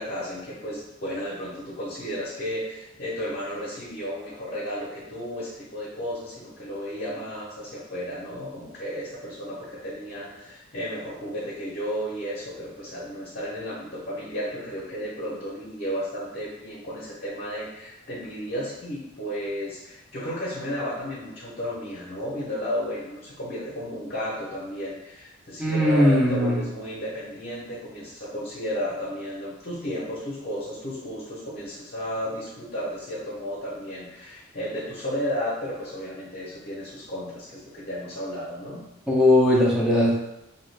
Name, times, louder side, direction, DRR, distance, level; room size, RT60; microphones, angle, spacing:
voice 1, 0.0-38.8, equal, 45° left, -8 dB, 0.7 m, -33 dB
voice 2, 25.6-26.6 39.1-40.1, left 1 dB, 5° right, -5 dB, 0.5 m, -19 dB
2.7 x 2.4 x 3.2 m, 0.91 s
head